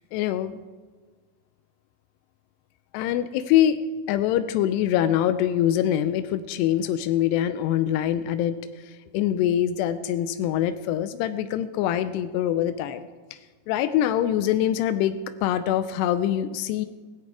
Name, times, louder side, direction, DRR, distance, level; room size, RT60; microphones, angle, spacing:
voice 1, 0.1-0.6 2.9-3.8 4.1-13.0 13.3-13.4 13.7-16.9, left 11 dB, 90° left, 11 dB, 2.8 m, -24 dB
17.0 x 14.5 x 4.7 m, 1.4 s
omnidirectional pair, 4.7 m